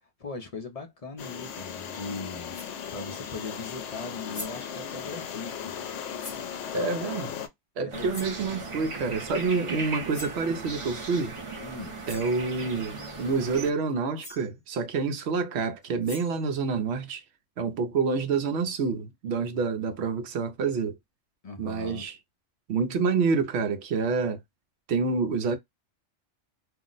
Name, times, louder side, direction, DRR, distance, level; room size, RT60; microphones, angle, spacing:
voice 1, 0.2-2.5 2.9-5.8 7.8-8.2 11.6-11.9 21.4-22.1, left 3 dB, 45° left, 0.5 m, -39 dB
sound 1, 1.2-7.5, left 8 dB, 75° left, 0.9 m, -37 dB
sound 2, 2.5-2.8 4.0-4.1 4.3-4.7 6.2-6.5 8.1-8.4 10.1-10.4 11.6-11.7 12.0-12.4 13.9-14.0 14.2-14.5 15.8-16.5, left 2 dB, 25° left, 0.8 m, -43 dB
voice 2, 6.7-7.3 7.8-11.4 12.1-17.2 17.6-21.0 21.6-22.2 22.7-24.4 24.9-25.6, right 4 dB, 65° right, 0.8 m, -28 dB
sound 3, 7.9-13.7, right 3 dB, 35° right, 0.6 m, -37 dB
2.6 x 2.0 x 3.7 m
omnidirectional pair, 1.3 m